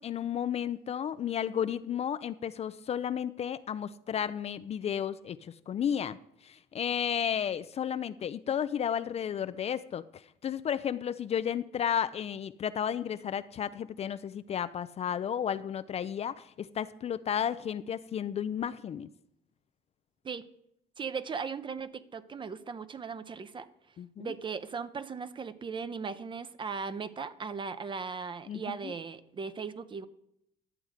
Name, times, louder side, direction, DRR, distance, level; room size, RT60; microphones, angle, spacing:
voice 1, 0.0-6.2 6.4-19.1 24.0-24.3 28.5-28.9, left 9 dB, 40° left, 13 dB, 0.4 m, -33 dB
voice 2, 21.0-23.7 24.2-30.0, right 5 dB, 30° right, 14 dB, 0.6 m, -38 dB
11.0 x 7.8 x 4.9 m, 0.76 s
cardioid pair, 110°, 17 cm